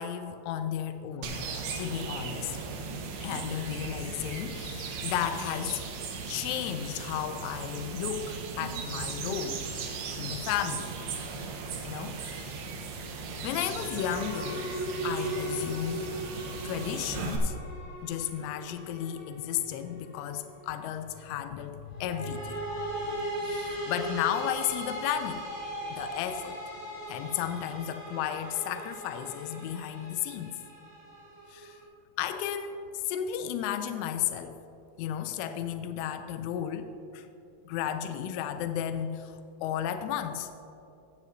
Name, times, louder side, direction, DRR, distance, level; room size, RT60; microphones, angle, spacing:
voice 1, 0.0-1.4 1.8-2.6 3.2-5.8 6.3-9.7 10.2-10.9 11.8-12.5 13.4-14.7 15.0-16.1 16.6-17.6 18.0-22.9 23.4-25.5 25.9-26.6 27.1-30.6 31.5-31.8 32.2-34.6 35.0-37.3 37.7-40.5, left 10 dB, 90° left, 9 dB, 2.7 m, -33 dB
sound 1, 1.2-17.4, right 5 dB, 80° right, 2.3 m, -37 dB
sound 2, 13.9-20.4 21.9-31.8, right 1 dB, 45° left, 2.3 m, -38 dB
17.5 x 9.0 x 2.7 m, 2.8 s
omnidirectional pair, 6.0 m